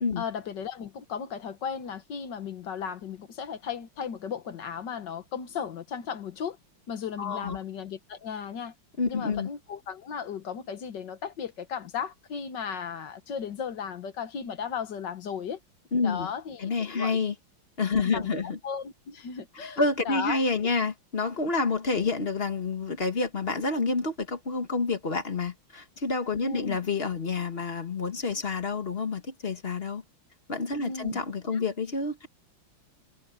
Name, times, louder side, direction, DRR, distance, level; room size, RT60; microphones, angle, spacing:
voice 1, 0.2-6.6 6.9-8.7 9.1-15.6 16.0-17.2 18.0-19.8 20.1-20.4 20.6-20.7 26.4-26.8 30.8-31.2 31.5-31.6, left 7 dB, 60° left, 1.8 m, -35 dB
voice 2, 7.2-7.6 9.0-9.5 15.9-16.3 16.6-17.3 17.8-18.6 19.6-30.0 30.5-32.3, left 4 dB, 30° left, 1.5 m, -28 dB
omnidirectional pair, 2.3 m